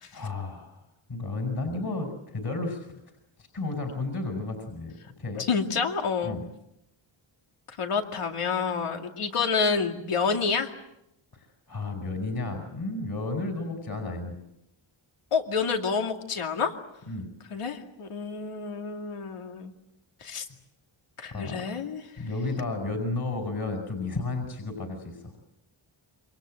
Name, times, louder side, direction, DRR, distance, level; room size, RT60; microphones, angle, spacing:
voice 1, 0.1-3.0 3.4-5.4 6.2-6.4 11.3-14.4 17.1-17.3 21.3-21.6 22.2-25.3, left 3 dB, 50° left, 5 dB, 5.4 m, -33 dB
voice 2, 5.4-6.4 7.8-10.7 15.3-16.7 17.5-19.7 20.2-20.5 21.2-22.0, left 5 dB, 90° left, 4 dB, 2.5 m, -28 dB
27.5 x 25.5 x 7.8 m, 0.83 s
wide cardioid pair, 115°, 49 cm